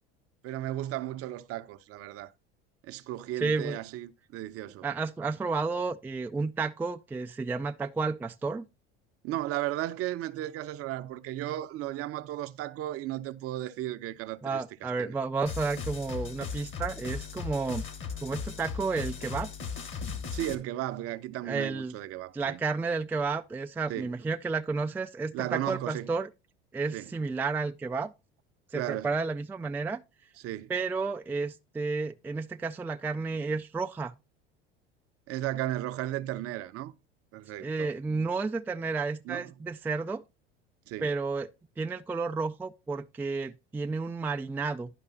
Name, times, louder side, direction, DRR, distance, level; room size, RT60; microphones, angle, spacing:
voice 1, 0.4-2.3 2.8-4.8 9.2-15.2 20.3-22.6 23.9-24.1 25.3-26.1 26.9-27.1 28.7-29.1 30.4-30.7 35.3-36.9 37.3-37.9 39.2-39.5 40.9-41.1, right 14 dB, 50° right, 0.7 m, -35 dB
voice 2, 3.4-3.8 4.8-8.6 14.4-17.9 18.2-19.5 21.5-21.9 22.3-26.3 26.7-28.1 28.7-30.0 30.7-34.1 37.6-40.2 41.0-41.5 41.8-44.9, right 4 dB, 5° right, 0.3 m, -31 dB
sound 1, 15.5-20.5, left 6 dB, 40° left, 1.5 m, -37 dB
11.0 x 5.4 x 4.0 m
hypercardioid pair, 80°, 30 cm